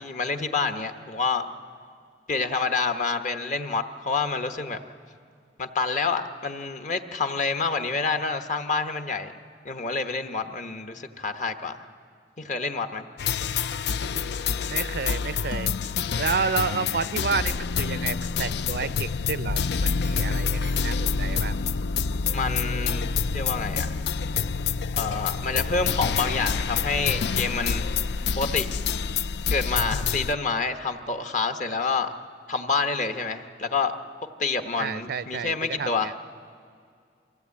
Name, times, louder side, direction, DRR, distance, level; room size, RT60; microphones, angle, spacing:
voice 1, 0.0-1.5 2.3-4.8 5.6-9.3 9.6-11.8 12.4-13.0 22.3-23.0 23.3-24.0 24.9-27.8 28.4-28.7 29.5-32.1 32.5-33.9 34.4-36.1, left 4 dB, 45° left, 7 dB, 1.0 m, -28 dB
sound 1, 13.2-30.3, left 5 dB, 70° left, 0.4 m, -27 dB
voice 2, 14.0-15.7 16.2-21.6 34.8-36.1, right 5 dB, 60° right, 14 dB, 0.5 m, -31 dB
24.0 x 16.0 x 8.4 m, 2.3 s
head